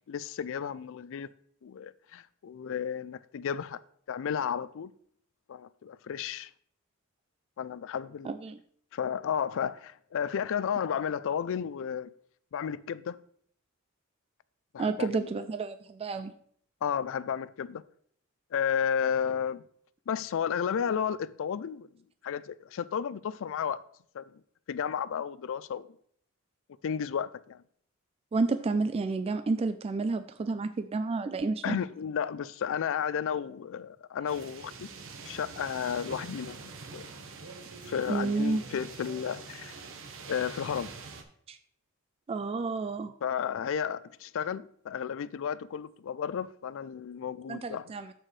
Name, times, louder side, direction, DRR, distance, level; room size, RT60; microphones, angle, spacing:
voice 1, 0.1-1.3 1.6-3.8 4.1-4.9 5.5-6.5 7.6-8.3 8.9-12.1 12.5-13.2 14.7-15.1 15.4-15.5 16.8-17.8 18.5-19.6 20.1-21.9 22.2-23.8 24.1-24.3 24.7-25.9 26.8-27.6 31.6-34.9 35.2-37.1 37.8-39.8 40.3-40.9 43.2-47.9, left 7 dB, 65° left, 0.4 m, -33 dB
voice 2, 8.2-8.6 14.8-16.3 28.3-31.8 38.1-38.6 41.5-41.6 42.3-43.1 47.5-48.1, right 3 dB, 25° right, 0.3 m, -30 dB
sound 1, 34.3-41.2, right 4 dB, 65° right, 1.0 m, -45 dB
14.0 x 4.7 x 3.2 m
head